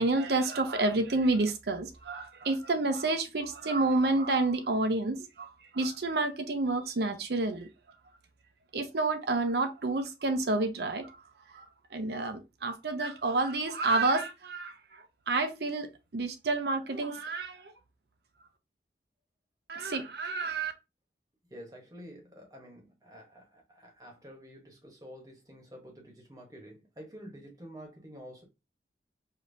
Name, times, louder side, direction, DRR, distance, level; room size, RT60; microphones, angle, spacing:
voice 1, 0.0-7.7 8.7-11.2 11.5-11.6 11.9-15.9 16.1-17.7 19.7-20.7, right 2 dB, 70° right, 0.6 m, -29 dB
voice 2, 21.5-28.4, equal, 20° right, 1.1 m, -49 dB
5.1 x 2.7 x 2.7 m
head